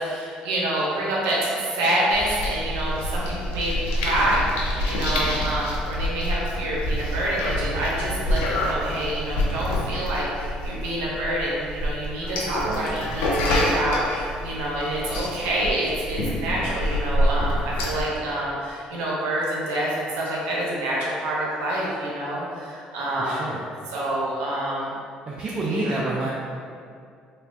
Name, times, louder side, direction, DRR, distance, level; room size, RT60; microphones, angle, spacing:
voice 1, 0.0-23.5 23.9-24.9 25.6-26.1, right 1 dB, 85° right, -5 dB, 0.7 m, -27 dB
sound 1, 2.1-18.0, equal, 90° left, 0.5 m, -27 dB
voice 2, 12.6-12.9 23.2-23.7 25.3-26.3, right 2 dB, 40° right, -3 dB, 0.3 m, -28 dB
3.2 x 2.2 x 2.5 m, 2.3 s
supercardioid pair, 80°, 3 cm